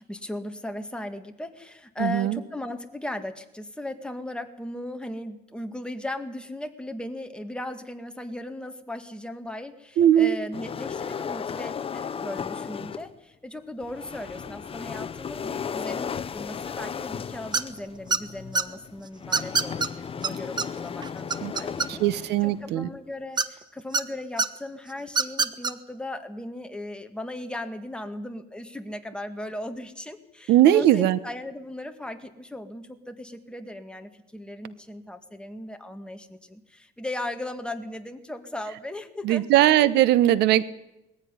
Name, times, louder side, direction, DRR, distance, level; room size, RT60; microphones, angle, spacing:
voice 1, 0.0-39.5, left 1 dB, 5° left, 6 dB, 2.1 m, -37 dB
voice 2, 2.0-2.4 10.0-10.4 21.4-21.5 21.9-22.9 30.5-31.2 39.2-40.6, right 12 dB, 80° right, 16 dB, 1.1 m, -19 dB
sound 1, 10.5-13.1 13.8-22.7, left 7 dB, 35° left, 0.9 m, -35 dB
sound 2, 17.5-17.8 18.1-18.6 19.3-19.9 20.2-20.3 20.6-20.7 21.0-22.2 23.4-24.0 24.4-24.5 25.1-25.7, right 4 dB, 25° right, 1.2 m, -24 dB
21.5 x 15.0 x 10.0 m, 0.93 s
cardioid pair, 110°, 17 cm